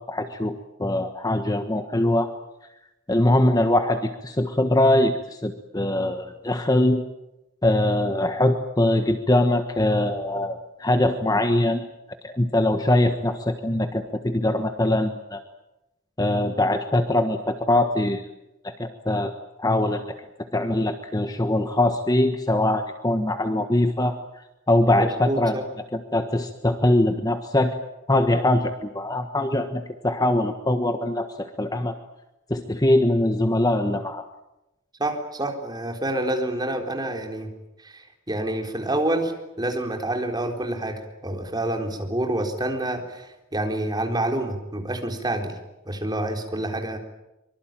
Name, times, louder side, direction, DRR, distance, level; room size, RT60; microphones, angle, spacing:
voice 1, 0.1-2.3 3.1-7.0 7.6-11.8 12.2-15.4 16.2-18.3 18.6-19.3 19.6-20.0 20.5-24.1 24.7-25.6 25.9-27.7 28.1-31.9 32.5-34.2, left 1 dB, 20° left, 7 dB, 1.4 m, -22 dB
voice 2, 25.0-25.6 35.0-37.5 37.8-45.5 45.9-47.0, right 1 dB, 20° right, 3 dB, 4.0 m, -28 dB
24.5 x 24.0 x 9.1 m, 0.95 s
head